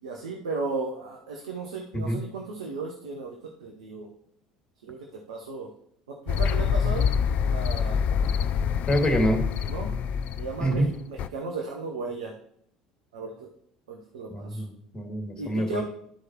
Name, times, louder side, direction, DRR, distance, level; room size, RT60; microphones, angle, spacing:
voice 1, 0.0-3.3 3.6-4.1 4.8-5.7 6.1-7.1 7.4-8.0 9.7-10.0 10.4-12.3 13.1-13.5 13.9-14.6 15.4-15.8, right 3 dB, 75° right, 0 dB, 1.0 m, -35 dB
sound 1, 6.3-11.3, left 7 dB, 45° left, 0.3 m, -26 dB
voice 2, 8.9-9.4 10.6-10.9 14.3-14.7 14.9-15.8, equal, 25° left, 4 dB, 1.9 m, -25 dB
12.5 x 4.8 x 3.0 m, 0.68 s
figure-of-eight pair, 60°, 3 cm